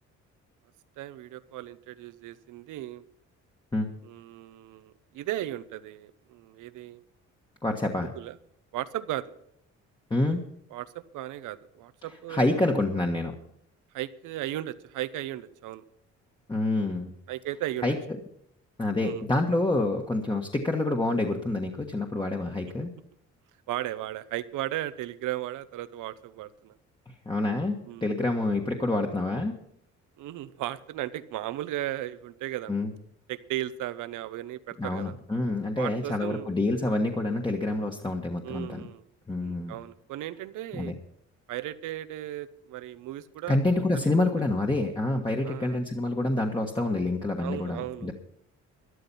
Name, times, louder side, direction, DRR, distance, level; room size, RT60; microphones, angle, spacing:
voice 1, 1.0-3.0 4.0-7.0 8.1-8.4 8.7-9.2 10.7-12.6 13.9-15.8 17.3-17.9 19.0-19.2 23.7-26.8 27.8-28.1 30.2-32.7 33.3-35.2 35.8-36.5 38.4-39.0 39.4-40.9 41.5-43.6 43.9-44.1 45.4-45.8 47.4-48.1, right 14 dB, 90° right, 14 dB, 0.8 m, -36 dB
voice 2, 7.6-8.1 10.1-10.4 12.3-13.3 16.5-17.1 17.8-17.9 18.8-22.9 27.2-29.6 32.7-32.9 34.8-38.8 39.3-39.7 40.7-40.9 43.5-48.1, left 2 dB, 15° left, 1 dB, 1.4 m, -27 dB
13.0 x 11.5 x 5.6 m, 0.72 s
cardioid pair, 90°, 30 cm